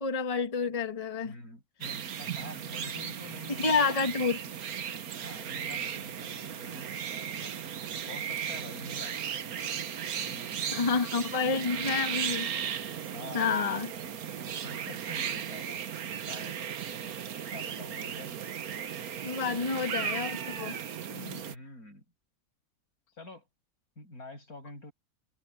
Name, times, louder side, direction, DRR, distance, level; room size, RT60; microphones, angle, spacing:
voice 1, 0.0-1.4 3.6-4.4 10.7-12.5 13.3-13.9 19.2-20.8 21.1-21.4, left 5 dB, 25° left, 1.2 m, -29 dB
voice 2, 1.2-4.1 5.2-7.6 8.1-9.2 10.2-12.5 13.1-13.8 14.5-15.8 16.2-16.6 17.5-18.4 19.8-19.9 21.5-22.0 23.2-23.5 24.0-24.9, left 2 dB, 80° left, 8.7 m, -47 dB
sound 1, 1.8-21.5, right 8 dB, 80° right, 1.5 m, -36 dB
omnidirectional pair, 1.5 m